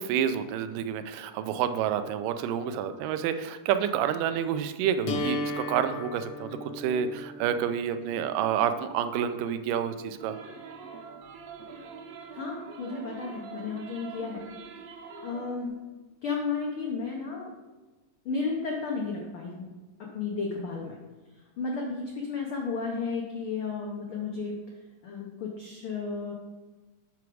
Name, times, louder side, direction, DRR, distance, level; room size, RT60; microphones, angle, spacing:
voice 1, 0.0-10.4, right 8 dB, 90° right, 10 dB, 2.3 m, -29 dB
sound 1, 5.1-11.0, left 1 dB, 60° left, 1.6 m, -37 dB
sound 2, 10.2-15.7, right 5 dB, 75° right, 1.4 m, -44 dB
voice 2, 12.3-14.4 14.8-14.9 15.2-15.7 16.2-17.5 18.2-19.7 20.1-21.0 21.3-24.6 25.0-26.3, left 4 dB, 90° left, -1 dB, 1.1 m, -33 dB
8.4 x 5.9 x 4.7 m, 1.2 s
omnidirectional pair, 3.8 m